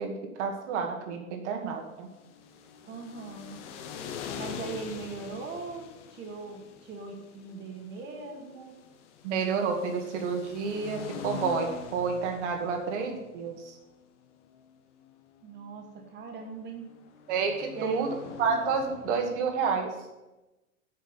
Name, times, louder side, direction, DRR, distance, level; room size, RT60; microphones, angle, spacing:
voice 1, 0.0-2.1 9.2-13.7 17.3-18.1 18.4-19.9, right 5 dB, 50° right, 3 dB, 2.3 m, -30 dB
sound 1, 2.0-19.9, left 8 dB, 50° left, 1.3 m, -45 dB
voice 2, 2.8-3.6 4.4-8.7 15.4-16.9 17.7-18.1, right 4 dB, 25° right, 2 dB, 2.0 m, -40 dB
8.9 x 6.3 x 7.3 m, 1.0 s
hypercardioid pair, 120°, 44 cm